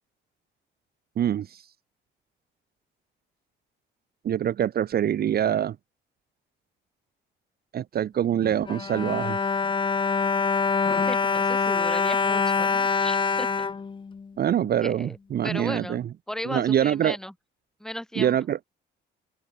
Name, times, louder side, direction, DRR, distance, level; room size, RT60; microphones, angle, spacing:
voice 1, 1.2-1.6 4.2-5.8 7.7-9.4 14.4-16.0 16.5-17.2 18.2-18.6, right 10 dB, 50° right, 0.7 m, -25 dB
Bowed string instrument, 8.4-14.7 15.4-15.5 15.8-15.9, left 5 dB, 25° left, 0.7 m, -25 dB
voice 2, 11.1-13.7 14.4-14.5 14.8-15.2 15.4-16.0 16.3-17.3 17.8-18.4, equal, 5° left, 2.3 m, -36 dB
cardioid pair, 110°, 20 cm